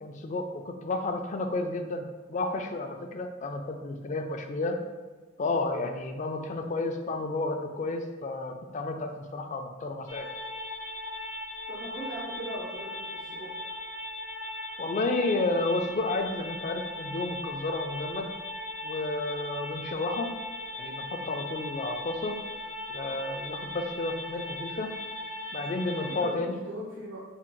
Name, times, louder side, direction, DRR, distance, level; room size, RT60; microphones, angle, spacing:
voice 1, 0.0-4.8 5.4-10.3 14.8-18.3 18.8-20.3 20.8-22.3 22.9-24.9 25.5-26.6, left 2 dB, 40° left, 5 dB, 0.3 m, -31 dB
sound 1, 10.1-26.3, left 1 dB, 75° left, 0.7 m, -38 dB
voice 2, 11.7-13.5 26.1-27.2, right 1 dB, 80° right, -6 dB, 0.7 m, -39 dB
3.6 x 2.2 x 4.4 m, 1.3 s
head